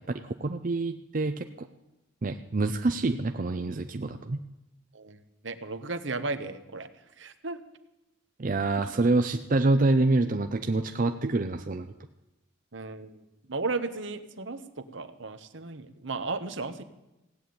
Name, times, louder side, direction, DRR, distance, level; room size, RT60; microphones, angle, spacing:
voice 1, 0.2-1.7 2.2-4.4 8.4-11.9, right 2 dB, 45° right, 7 dB, 0.6 m, -26 dB
voice 2, 4.9-6.9 7.2-7.6 8.8-8.9 12.7-13.2 13.5-16.8, right 3 dB, 70° right, 10 dB, 1.1 m, -35 dB
16.5 x 8.6 x 9.4 m, 0.95 s
head